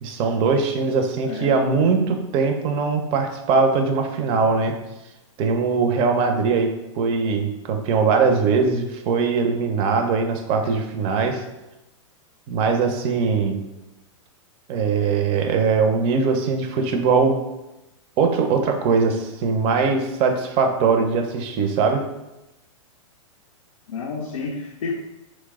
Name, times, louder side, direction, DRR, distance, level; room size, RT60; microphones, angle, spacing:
voice 1, 0.0-4.8 5.4-11.4 12.5-13.6 14.7-17.4 18.2-22.1, right 5 dB, 35° right, 5 dB, 0.4 m, -21 dB
voice 2, 1.3-1.6 23.9-24.9, left 4 dB, 85° left, 0 dB, 0.4 m, -30 dB
3.0 x 2.0 x 3.5 m, 0.97 s
hypercardioid pair, 120°, 17 cm